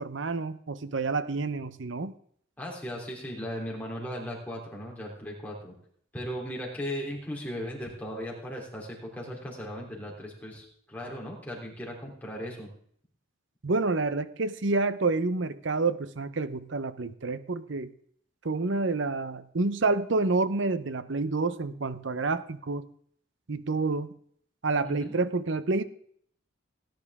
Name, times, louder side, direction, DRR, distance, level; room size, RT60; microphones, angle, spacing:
voice 1, 0.0-2.1 13.6-17.9 18.4-22.9 23.5-24.1 24.6-25.8, right 3 dB, 65° right, 14 dB, 0.7 m, -28 dB
voice 2, 2.6-5.7 6.1-12.7 24.8-25.1, equal, 10° left, -3 dB, 3.4 m, -37 dB
18.0 x 10.5 x 3.6 m, 0.62 s
head